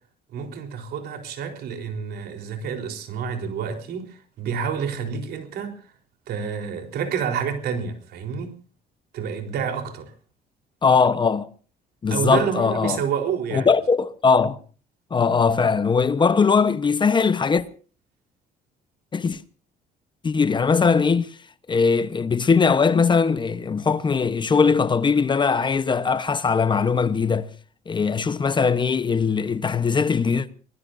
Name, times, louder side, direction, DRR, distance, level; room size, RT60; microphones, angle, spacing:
voice 1, 0.3-5.8 6.3-8.6 9.1-10.1 12.1-13.7, right 7 dB, 70° right, 4.0 m, -29 dB
voice 2, 10.8-11.5 12.0-13.0 13.5-14.6 15.1-17.6 19.1-19.4 20.2-21.3 21.7-27.5 27.9-30.5, left 5 dB, 25° left, 1.0 m, -20 dB
25.5 x 19.5 x 2.7 m
cardioid pair, 110°, 17 cm